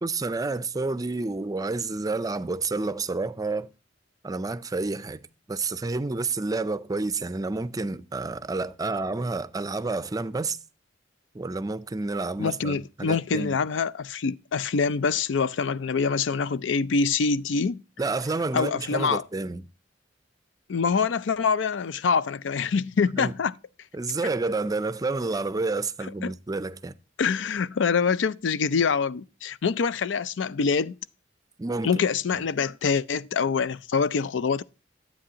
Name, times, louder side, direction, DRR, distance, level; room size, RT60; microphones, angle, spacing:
voice 1, 0.0-3.7 4.2-10.6 11.3-13.6 18.0-19.7 23.2-23.3 23.9-27.0 31.6-31.9, right 3 dB, 20° right, 0.4 m, -29 dB
voice 2, 12.4-17.8 18.5-19.2 20.7-23.5 26.2-26.3 27.2-30.9 31.8-34.6, left 5 dB, 85° left, 0.5 m, -25 dB
10.0 x 8.5 x 2.8 m
head